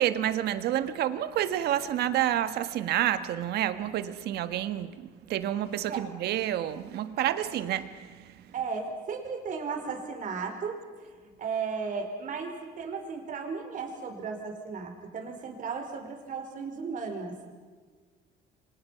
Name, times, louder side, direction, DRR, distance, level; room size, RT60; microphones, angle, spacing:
voice 1, 0.0-8.3, right 11 dB, 75° right, 1.5 m, -29 dB
voice 2, 8.5-11.1 11.4-17.4, right 5 dB, 50° right, 5.0 m, -35 dB
29.0 x 25.0 x 5.9 m
cardioid pair, 110°, 17 cm